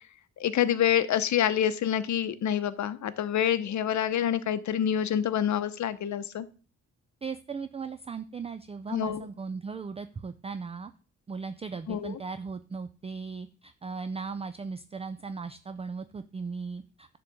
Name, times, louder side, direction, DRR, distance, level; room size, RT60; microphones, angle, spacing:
voice 1, 0.4-6.4 8.9-9.2 11.9-12.1, left 10 dB, 65° left, 13 dB, 0.8 m, -27 dB
voice 2, 7.2-10.9 11.3-17.2, right 5 dB, 20° right, 11 dB, 0.4 m, -37 dB
10.5 x 3.7 x 6.9 m, 0.37 s
cardioid pair, 125°, 31 cm